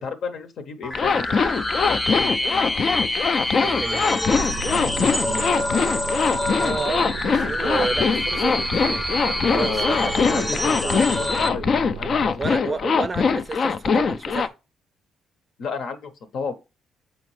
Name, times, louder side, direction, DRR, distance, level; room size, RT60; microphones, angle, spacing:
voice 1, 0.0-3.0 4.7-5.6 9.5-11.7 11.9-13.0 15.6-16.5, left 5 dB, 70° left, 0.9 m, -33 dB
sound 1, 0.8-11.5, left 1 dB, 15° left, 0.7 m, -27 dB
Zipper (clothing), 0.9-14.5, left 5 dB, 50° left, 0.4 m, -22 dB
voice 2, 3.6-4.0 6.6-9.0 9.5-11.1 12.4-14.5, right 4 dB, 30° right, 0.4 m, -30 dB
sound 2, 4.3-12.3, right 6 dB, 90° right, 0.4 m, -35 dB
6.9 x 4.3 x 3.1 m
cardioid pair, 90°, 0 cm